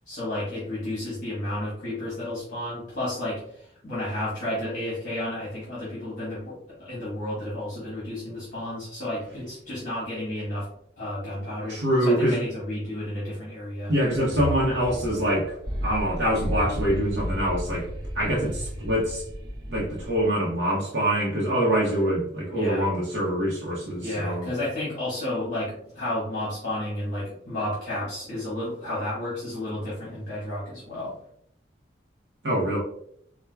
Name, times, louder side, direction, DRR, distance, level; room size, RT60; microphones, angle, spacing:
voice 1, 0.1-10.7 11.0-13.9 22.5-22.9 24.0-31.1, left 1 dB, 45° left, -9 dB, 1.2 m, -32 dB
voice 2, 11.7-12.4 13.9-15.6 15.8-17.9 18.1-19.2 19.7-24.5 32.4-32.8, equal, 65° right, -5 dB, 0.7 m, -25 dB
sound 1, 14.1-20.3, equal, 25° right, 0.6 m, -33 dB
4.4 x 2.1 x 2.2 m, 0.70 s
head